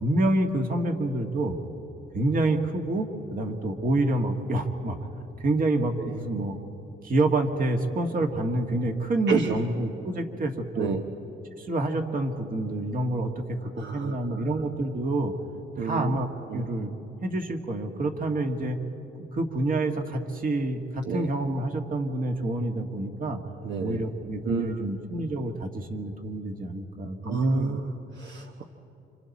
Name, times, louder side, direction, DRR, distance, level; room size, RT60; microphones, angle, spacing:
voice 1, 0.0-1.6 2.1-5.1 5.4-6.6 7.0-11.0 11.6-15.3 15.8-16.9 17.2-18.8 19.2-23.4 23.8-27.7, right 2 dB, 45° right, 4 dB, 2.0 m, -28 dB
voice 2, 9.3-9.6 10.8-11.0 13.8-14.6 15.8-16.7 21.0-21.3 23.6-24.0 24.4-24.8 25.2-25.3 27.2-28.6, right 5 dB, 65° right, 3 dB, 1.1 m, -30 dB
29.0 x 26.0 x 4.3 m, 3.0 s
cardioid pair, 90°, 20 cm